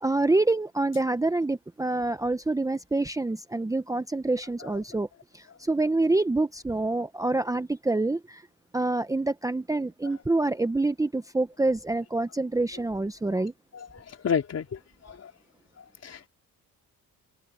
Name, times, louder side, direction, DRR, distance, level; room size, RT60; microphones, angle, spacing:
voice 1, 0.0-5.1 5.3-8.4 8.7-13.5, right 2 dB, 10° right, 0.8 m, -26 dB
voice 2, 13.7-15.3 15.8-16.3, left 7 dB, 45° left, 3.8 m, -32 dB
cardioid pair, 110°, 35 cm